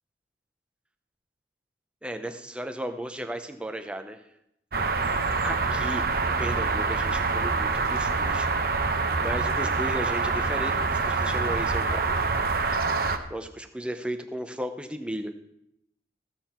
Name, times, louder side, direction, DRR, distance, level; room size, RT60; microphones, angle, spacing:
voice 1, 2.0-4.2 5.4-8.5 9.2-12.2 13.3-15.3, right 1 dB, 5° right, 7 dB, 0.6 m, -35 dB
sound 1, 4.7-13.2, right 4 dB, 55° right, 0.8 m, -26 dB
14.5 x 7.6 x 4.4 m, 0.79 s
head